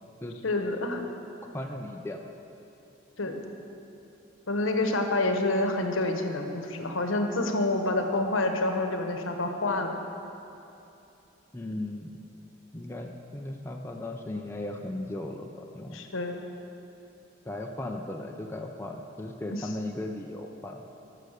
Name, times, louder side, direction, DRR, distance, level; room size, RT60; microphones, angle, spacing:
voice 1, 0.4-1.0 3.2-3.4 4.5-9.9 15.9-16.4 19.5-19.7, left 2 dB, 80° left, 4 dB, 1.0 m, -28 dB
voice 2, 1.5-2.2 11.5-12.1 12.7-16.0 17.5-20.8, left 1 dB, 10° left, 1 dB, 0.5 m, -36 dB
12.0 x 6.6 x 6.5 m, 2.8 s
head